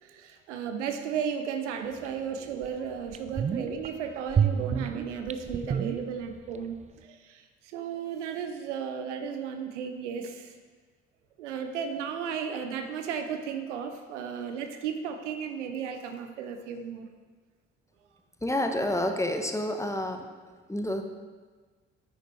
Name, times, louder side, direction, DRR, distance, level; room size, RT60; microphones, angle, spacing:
voice 1, 0.0-6.8 7.0-10.5 11.4-17.1, right 7 dB, 80° right, 6 dB, 0.7 m, -34 dB
sound 1, 2.1-2.2 2.6-2.7 3.1-3.9 4.3-6.6 6.8-6.9, right 7 dB, 20° right, 0.4 m, -29 dB
voice 2, 18.4-20.3 20.7-21.0, left 1 dB, 10° left, 5 dB, 1.0 m, -29 dB
9.8 x 7.9 x 3.3 m, 1.4 s
figure-of-eight pair, 45°, 36 cm